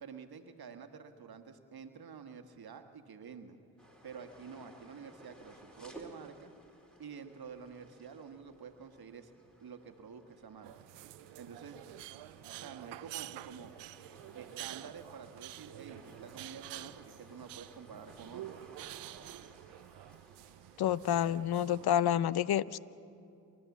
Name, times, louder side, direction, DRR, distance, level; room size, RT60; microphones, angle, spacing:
voice 1, 0.0-3.6 4.0-6.5 7.0-9.3 9.6-10.7 11.4-11.8 12.5-13.7 14.3-18.5, right 6 dB, 60° right, 7 dB, 1.5 m, -49 dB
sound 1, 3.8-21.1, right 1 dB, ahead, 4.2 m, -58 dB
sound 2, 10.6-21.9, right 16 dB, 90° right, 0.5 m, -48 dB
voice 2, 20.8-22.8, left 10 dB, 65° left, 19 dB, 0.7 m, -29 dB
30.0 x 12.5 x 7.2 m, 2.5 s
supercardioid pair, 45°, 41 cm